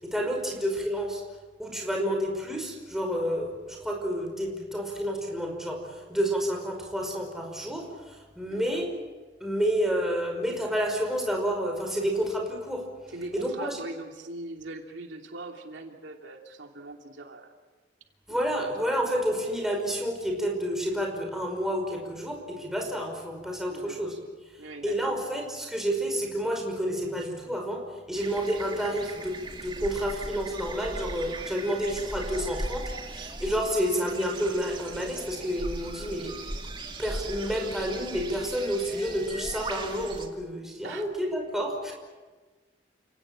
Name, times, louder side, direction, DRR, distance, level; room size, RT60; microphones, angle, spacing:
voice 1, 0.0-1.2 1.6-8.9 9.4-12.9 13.3-13.8 18.3-24.2 24.5-36.6 37.0-41.9, equal, ahead, 1 dB, 5.3 m, -30 dB
voice 2, 8.5-8.8 13.1-17.5 18.3-18.9 23.7-24.0 24.6-25.1 40.8-41.1, right 2 dB, 85° right, 2 dB, 2.9 m, -41 dB
sound 1, 28.1-40.3, right 2 dB, 25° right, 2.2 m, -38 dB
29.5 x 18.0 x 8.9 m, 1.3 s
head